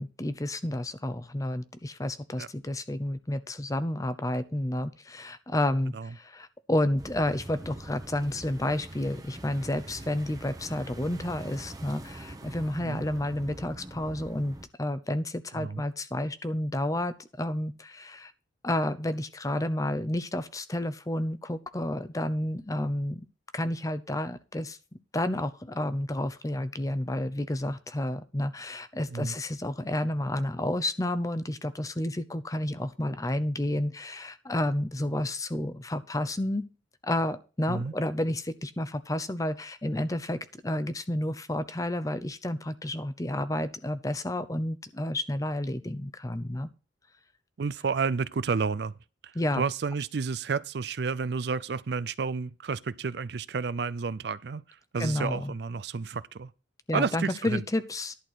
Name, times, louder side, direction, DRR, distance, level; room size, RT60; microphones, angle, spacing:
voice 1, 0.0-18.3 18.6-23.2 23.5-24.8 25.1-36.7 37.0-46.7 49.3-49.6 55.0-55.5 56.9-58.1, left 1 dB, 20° left, 0.7 m, -30 dB
sound 1, 7.0-14.7, right 1 dB, 20° right, 1.0 m, -43 dB
voice 2, 47.6-48.9 49.2-54.6 54.9-56.5 56.9-57.6, right 5 dB, 60° right, 0.4 m, -31 dB
11.5 x 4.3 x 8.0 m
head